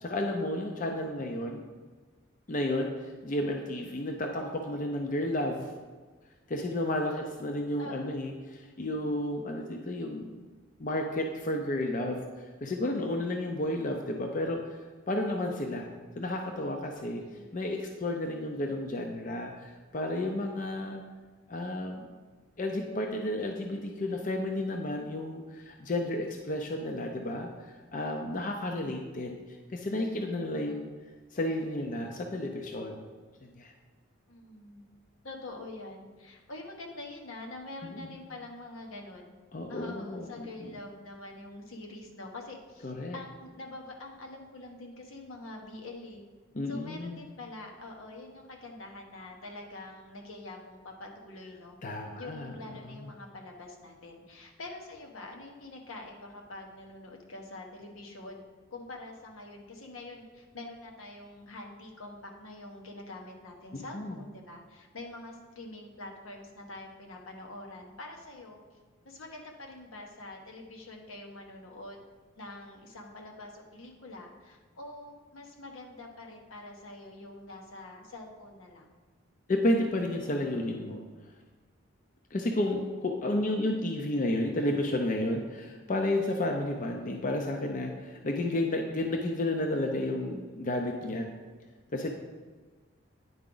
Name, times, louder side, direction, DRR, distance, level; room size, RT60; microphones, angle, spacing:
voice 1, 0.0-1.6 2.5-5.7 6.5-10.3 10.8-14.8 15.1-15.9 16.2-17.2 17.5-21.0 21.5-22.1 22.6-29.4 29.7-30.9 31.3-33.0 33.6-33.7 37.8-38.2 39.5-40.4 42.8-43.2 46.5-47.2 51.8-52.5 63.7-64.1 79.5-81.0 82.3-91.3 91.9-92.1, left 1 dB, 40° left, 3 dB, 0.5 m, -32 dB
voice 2, 7.8-8.2 17.2-17.5 34.3-34.8 35.2-39.3 39.7-46.2 46.7-51.8 52.1-58.4 58.7-68.6 69.0-72.0 72.4-78.9, left 2 dB, 80° left, 1 dB, 1.1 m, -45 dB
9.3 x 4.8 x 3.8 m, 1.4 s
head